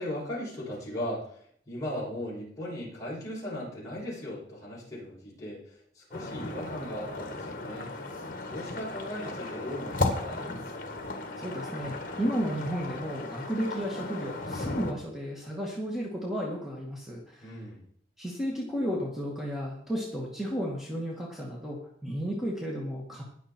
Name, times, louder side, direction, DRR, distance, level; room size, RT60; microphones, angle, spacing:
voice 1, 0.0-7.9 8.5-10.5 17.4-17.8, left 1 dB, 20° left, -7 dB, 6.9 m, -38 dB
sound 1, 6.1-14.9, left 2 dB, 45° left, 1.9 m, -35 dB
voice 2, 11.4-17.6 18.2-23.2, equal, ahead, -3 dB, 2.1 m, -33 dB
20.0 x 7.0 x 4.6 m, 0.63 s
head